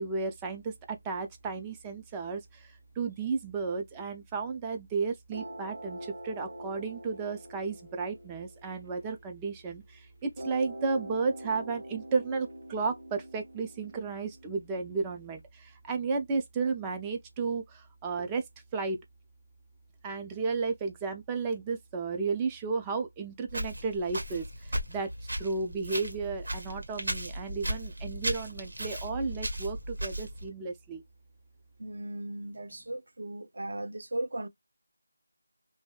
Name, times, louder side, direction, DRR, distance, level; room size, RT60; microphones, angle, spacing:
voice 1, 0.0-18.4 18.7-19.0 20.0-25.1 25.4-31.0, right 4 dB, 10° right, 0.3 m, -33 dB
sound 1, 5.3-9.7 10.4-15.3, right 1 dB, 30° right, 1.1 m, -44 dB
Walk footsteps, 23.5-30.5, right 1 dB, 75° right, 1.5 m, -36 dB
voice 2, 31.8-34.5, right 1 dB, 55° right, 0.6 m, -37 dB
2.8 x 2.6 x 2.3 m
figure-of-eight pair, 175°, 0 cm